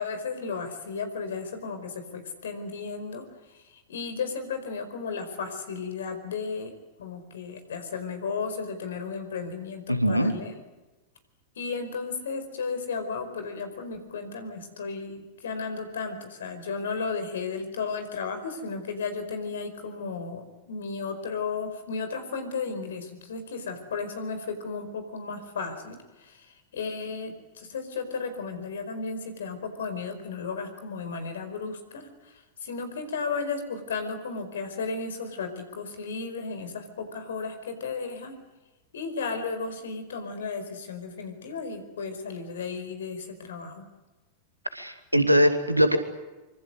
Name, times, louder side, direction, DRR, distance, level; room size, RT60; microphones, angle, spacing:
voice 1, 0.0-10.6 11.6-38.3 38.9-43.9, left 4 dB, 65° left, 8 dB, 4.8 m, -34 dB
voice 2, 9.9-10.3 44.7-46.0, equal, 90° right, 8 dB, 2.4 m, -21 dB
25.5 x 24.5 x 8.0 m, 1.1 s
figure-of-eight pair, 90°, 0 cm